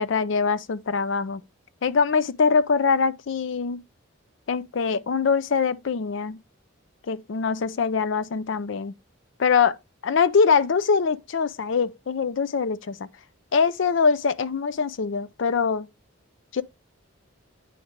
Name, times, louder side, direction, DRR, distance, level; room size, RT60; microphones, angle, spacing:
voice 1, 0.0-1.4 1.8-3.8 4.5-6.4 7.1-8.9 9.4-9.8 10.0-13.1 13.5-15.9 16.5-16.6, left 5 dB, 60° left, 0.4 m, -23 dB
9.2 x 5.0 x 3.0 m
head